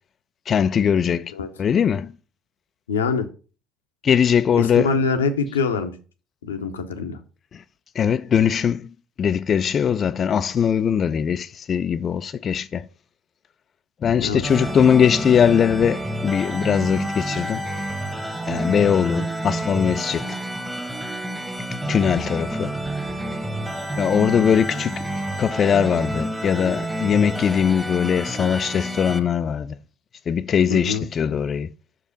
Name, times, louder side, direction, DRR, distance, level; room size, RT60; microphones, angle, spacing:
voice 1, 0.5-1.3 1.6-2.1 4.0-4.9 7.5-7.6 8.0-8.9 9.2-12.9 14.0-17.6 18.5-20.4 21.9-22.8 24.0-25.1 25.4-29.8 30.3-31.7, left 8 dB, 40° left, 0.3 m, -20 dB
voice 2, 2.9-3.3 4.5-5.9 6.4-7.2 14.2-14.4 30.7-31.1, left 4 dB, 85° left, 0.7 m, -24 dB
sound 1, 14.4-29.2, right 1 dB, 5° right, 1.3 m, -29 dB
6.2 x 5.1 x 5.3 m
hypercardioid pair, 60°, 0 cm